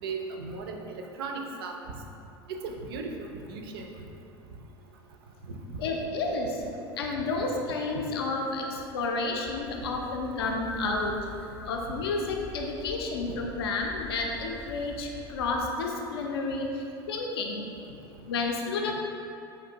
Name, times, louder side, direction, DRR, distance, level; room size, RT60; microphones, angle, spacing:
voice 1, 0.0-1.8 2.5-3.9 5.5-5.8, right 4 dB, 65° right, 3 dB, 0.4 m, -37 dB
voice 2, 5.8-6.6 7.0-11.1 11.7-17.7 18.3-18.9, left 3 dB, 70° left, 1 dB, 0.4 m, -31 dB
sound 1, 9.5-15.7, left 2 dB, 20° left, 0.5 m, -45 dB
4.2 x 2.6 x 2.8 m, 2.6 s
figure-of-eight pair, 75°, 13 cm